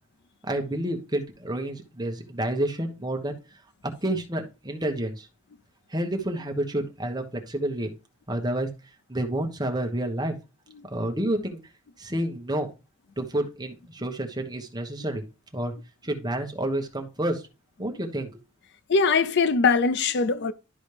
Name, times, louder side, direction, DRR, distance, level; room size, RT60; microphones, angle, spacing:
voice 1, 0.4-3.4 4.0-5.3 5.9-7.9 8.3-8.7 9.1-10.3 10.8-11.6 12.0-12.7 13.2-15.2 15.5-15.7 16.0-17.4 17.8-18.4, right 1 dB, 20° right, 1.2 m, -29 dB
voice 2, 18.9-20.5, left 4 dB, 55° left, 0.5 m, -21 dB
12.0 x 4.1 x 3.3 m
head